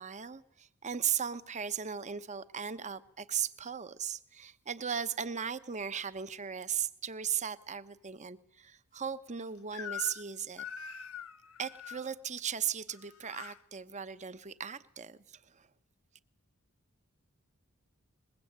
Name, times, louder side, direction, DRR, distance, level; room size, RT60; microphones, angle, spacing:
voice 1, 0.0-10.6 11.6-15.7, right 8 dB, 35° right, 1.0 m, -37 dB
Crying sobbing / Screech, 9.7-10.3 10.6-12.1 12.9-13.6, left 8 dB, 70° left, 1.0 m, -43 dB
23.0 x 21.5 x 8.8 m
head